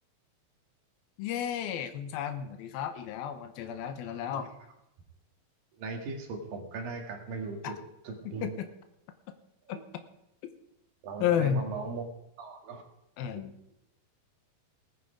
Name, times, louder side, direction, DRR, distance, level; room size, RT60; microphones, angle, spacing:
voice 1, 1.2-4.5 7.6-7.7 8.3-8.7 9.7-9.8 11.2-11.7 13.2-13.5, left 9 dB, 85° left, 8 dB, 2.8 m, -32 dB
voice 2, 5.8-7.8 8.0-8.6 11.0-12.0 12.4-12.8, right 4 dB, 70° right, 2 dB, 3.7 m, -38 dB
18.5 x 11.0 x 5.1 m, 0.84 s
omnidirectional pair, 4.2 m